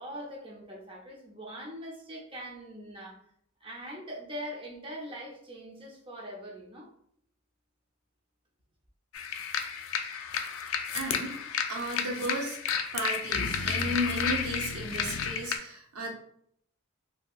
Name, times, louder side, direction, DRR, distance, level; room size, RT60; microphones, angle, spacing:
voice 1, 0.0-3.2 3.6-6.9, equal, 25° right, -2 dB, 0.6 m, -42 dB
sound 1, 9.1-15.6, left 7 dB, 65° left, 0.3 m, -32 dB
voice 2, 10.9-11.3 11.7-12.6 12.9-16.1, right 1 dB, 85° right, -1 dB, 0.8 m, -34 dB
2.8 x 2.7 x 2.3 m, 0.67 s
head